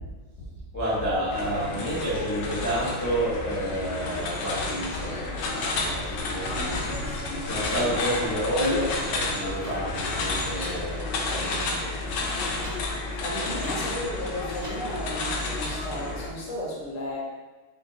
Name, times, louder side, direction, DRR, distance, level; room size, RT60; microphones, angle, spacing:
voice 1, 0.7-11.9, equal, 20° left, -9 dB, 0.4 m, -30 dB
sound 1, 1.3-16.3, left 3 dB, 70° left, 1.2 m, -31 dB
voice 2, 6.3-7.0 7.6-7.7 13.2-17.2, equal, 55° left, -3 dB, 0.9 m, -34 dB
sound 2, 7.6-7.7 8.6-8.7 9.6-9.7 10.6-10.7 11.6-11.7 12.6-12.8 13.6-13.8 14.6-14.8 15.6-15.8, right 1 dB, 40° right, 0.9 m, -41 dB
4.4 x 2.3 x 3.8 m, 1.3 s
omnidirectional pair, 2.1 m